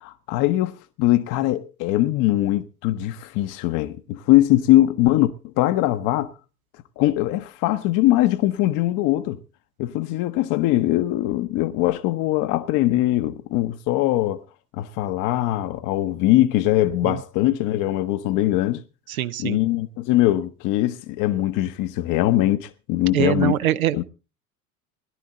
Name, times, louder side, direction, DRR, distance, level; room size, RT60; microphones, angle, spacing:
voice 1, 0.0-5.3 5.6-6.3 7.0-9.4 9.8-14.4 14.8-18.8 19.4-23.6 23.9-24.0, left 15 dB, 45° left, 0.9 m, -21 dB
voice 2, 19.1-19.6 23.1-24.0, right 13 dB, 70° right, 0.7 m, -23 dB
17.5 x 11.5 x 3.9 m
figure-of-eight pair, 70°, 44 cm